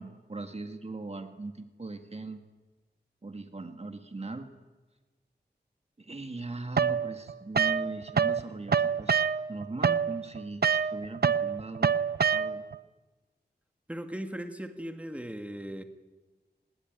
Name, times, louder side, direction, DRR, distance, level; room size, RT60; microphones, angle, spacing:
voice 1, 0.0-2.4 3.2-4.5 6.0-9.2 9.5-11.9 12.3-12.6, right 3 dB, 35° right, 7 dB, 1.9 m, -39 dB
sound 1, 6.8-8.4 8.7-12.8, right 7 dB, 65° right, 0.8 m, -26 dB
voice 2, 13.9-15.8, right 1 dB, 5° right, 6 dB, 2.0 m, -38 dB
27.5 x 20.0 x 9.4 m, 1.2 s
wide cardioid pair, 90°, 17 cm